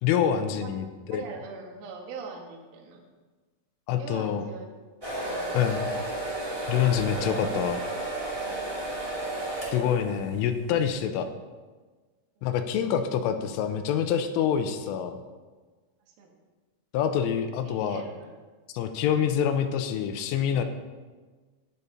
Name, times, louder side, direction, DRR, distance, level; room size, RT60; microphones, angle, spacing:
voice 1, 0.0-1.2 3.9-4.4 5.5-5.9 6.7-7.8 9.7-11.3 12.4-15.2 16.9-18.0 18.7-20.6, left 8 dB, 85° left, 8 dB, 3.2 m, -26 dB
voice 2, 1.1-3.0 4.0-4.7 5.2-6.0 8.4-8.7 12.4-12.5 16.1-16.3 17.6-18.3, right 4 dB, 60° right, 1 dB, 2.9 m, -42 dB
sound 1, 5.0-10.5, right 1 dB, 20° right, 0.8 m, -32 dB
14.0 x 9.8 x 4.1 m, 1.4 s
omnidirectional pair, 5.8 m